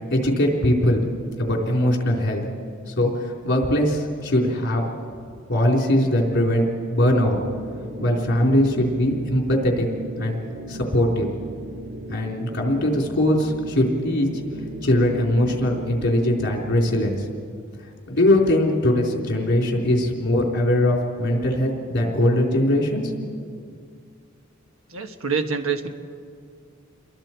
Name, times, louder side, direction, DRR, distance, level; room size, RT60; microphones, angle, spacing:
voice 1, 0.1-1.0 1.4-2.5 2.9-4.8 5.5-7.4 8.0-9.9 10.1-10.4 10.7-11.3 12.1-14.4 14.8-17.2 18.1-23.1, left 1 dB, 55° left, 0 dB, 3.7 m, -21 dB
sound 1, 7.0-17.4, right 1 dB, 60° right, 1.3 m, -37 dB
voice 2, 24.9-25.9, right 5 dB, 85° right, 6 dB, 1.3 m, -26 dB
29.0 x 22.5 x 4.5 m, 2.2 s
head